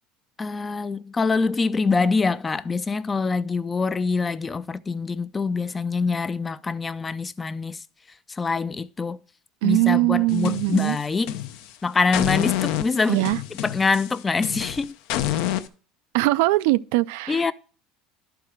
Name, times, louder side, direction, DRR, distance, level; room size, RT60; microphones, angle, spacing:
voice 1, 0.4-7.8 8.3-9.2 9.6-11.3 11.8-13.3 13.6-14.9 17.3-17.5, left 4 dB, 20° left, 0.3 m, -24 dB
voice 2, 9.6-11.0 13.1-13.4 16.1-17.5, right 19 dB, 80° right, 0.3 m, -21 dB
sound 1, 10.3-11.7 12.1-15.7, left 13 dB, 70° left, 0.6 m, -28 dB
11.0 x 4.6 x 5.0 m
supercardioid pair, 130°, 0 cm